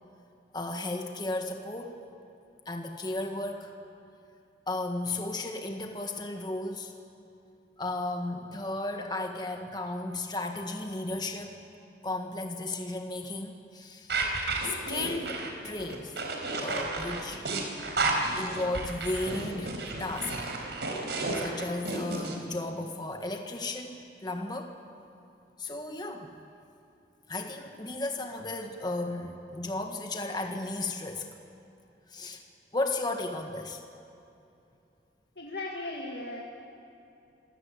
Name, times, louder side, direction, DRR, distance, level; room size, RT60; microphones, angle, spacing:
voice 1, 0.5-2.0 2.6-3.7 4.7-6.9 7.8-11.5 12.0-14.1 14.6-16.1 16.6-17.4 18.4-20.4 21.3-24.0 24.2-24.7 25.6-26.3 27.3-31.3 32.1-32.4 32.7-33.8, left 2 dB, 25° left, 3 dB, 1.6 m, -34 dB
sound 1, 14.1-22.3, right 3 dB, 85° right, 4.0 m, -32 dB
voice 2, 35.4-36.4, left 2 dB, 70° left, -2 dB, 2.1 m, -37 dB
26.5 x 17.0 x 8.5 m, 2.7 s
head